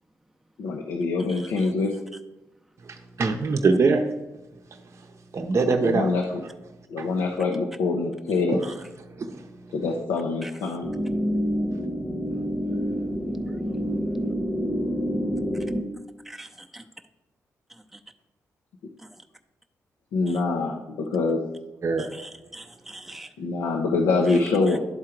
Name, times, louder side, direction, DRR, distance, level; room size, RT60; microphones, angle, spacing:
voice 1, 0.6-1.9 5.8-6.4 6.9-8.6 9.7-10.9 20.1-21.4 23.4-24.8, left 3 dB, 85° left, 1 dB, 0.7 m, -25 dB
voice 2, 1.3-1.7 8.6-8.7 10.4-10.5 16.2-16.8 17.9-18.0 20.3-20.4 22.0-23.3 24.3-24.4 24.7-24.8, right 1 dB, 5° right, 4 dB, 0.6 m, -43 dB
voice 3, 3.2-4.1 5.3-6.1 7.0-7.1 8.5-8.6 9.2-9.4 21.8-22.1, right 4 dB, 50° right, 3 dB, 0.6 m, -22 dB
sound 1, 10.8-15.8, equal, 25° left, 1.0 m, -27 dB
10.5 x 3.7 x 4.5 m, 1.0 s
supercardioid pair, 55°, 6 cm